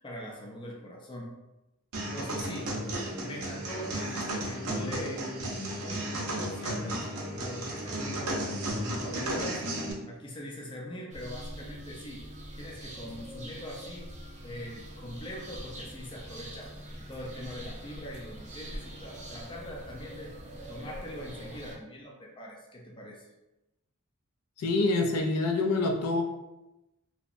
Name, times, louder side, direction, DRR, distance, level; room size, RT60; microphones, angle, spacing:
voice 1, 0.0-1.3 1.9-9.6 10.1-12.3 12.6-14.2 14.4-16.7 17.1-20.3 20.7-23.2, equal, 20° left, -2 dB, 0.4 m, -42 dB
sound 1, 1.9-9.9, right 1 dB, 75° right, 0.6 m, -34 dB
sound 2, 11.1-21.8, equal, 35° right, 0.5 m, -44 dB
voice 2, 24.6-26.2, left 2 dB, 85° left, 3 dB, 0.4 m, -26 dB
2.8 x 2.1 x 2.5 m, 0.97 s
head